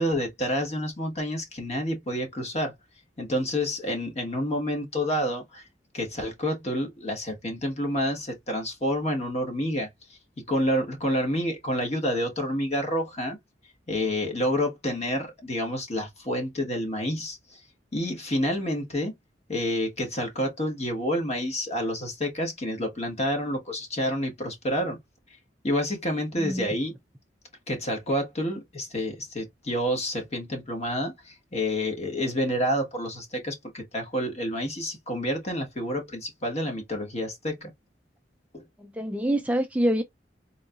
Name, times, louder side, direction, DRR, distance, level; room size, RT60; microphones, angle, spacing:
voice 1, 0.0-2.7 3.2-5.6 5.9-9.9 10.4-13.4 13.9-17.6 17.9-19.1 19.5-25.0 25.6-26.9 27.7-37.7 38.5-38.6, equal, 35° left, 1.2 m, -28 dB
voice 2, 26.3-26.7 38.8-40.0, right 1 dB, 10° right, 0.3 m, -26 dB
3.8 x 2.7 x 2.3 m
head